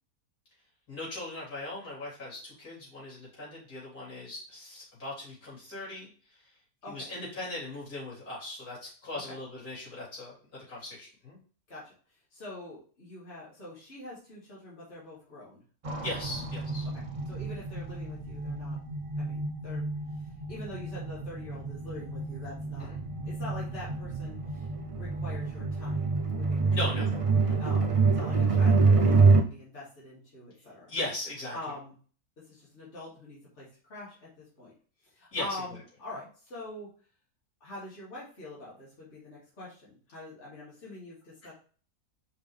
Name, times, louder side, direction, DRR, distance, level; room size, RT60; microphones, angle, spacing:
voice 1, 0.9-6.4 6.9-11.4 16.0-16.9 22.8-23.0 26.7-27.1 27.4-27.6 30.9-31.6 35.3-35.8, left 2 dB, 85° left, -8 dB, 4.2 m, -39 dB
voice 2, 12.3-15.6 17.3-18.8 19.2-19.9 20.2-22.9 23.2-24.7 24.9-26.7 27.6-30.9 31.5-31.9 32.4-34.7 35.0-36.9 37.6-41.5, left 2 dB, 50° left, -8 dB, 2.7 m, -44 dB
sound 1, 15.8-29.4, right 4 dB, 40° right, 0.4 m, -27 dB
5.5 x 5.2 x 3.4 m, 0.42 s
omnidirectional pair, 1.6 m